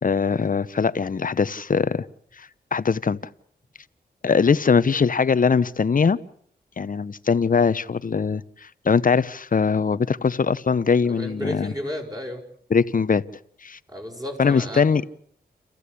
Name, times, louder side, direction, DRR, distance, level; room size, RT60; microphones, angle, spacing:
voice 1, 0.0-2.0 2.4-3.2 4.2-6.2 6.8-11.7 12.7-13.2 13.6-13.8 14.4-15.0, left 5 dB, 50° left, 16 dB, 0.9 m, -21 dB
voice 2, 11.1-12.4 13.9-14.9, left 1 dB, 20° right, 2 dB, 6.5 m, -33 dB
28.5 x 15.0 x 8.5 m, 0.68 s
cardioid pair, 55°, 17 cm